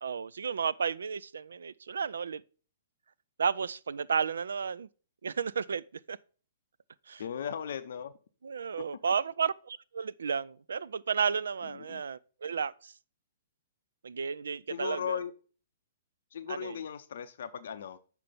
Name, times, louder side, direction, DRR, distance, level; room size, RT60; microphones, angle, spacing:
voice 1, 0.0-2.4 3.4-4.9 5.2-6.2 7.1-7.2 8.4-12.9 14.0-15.2 16.5-16.8, right 6 dB, 65° right, 0.3 m, -33 dB
voice 2, 7.2-8.1 11.6-12.0 14.7-15.3 16.3-18.0, left 8 dB, 55° left, 0.5 m, -37 dB
6.6 x 4.5 x 5.5 m
figure-of-eight pair, 115°, 0 cm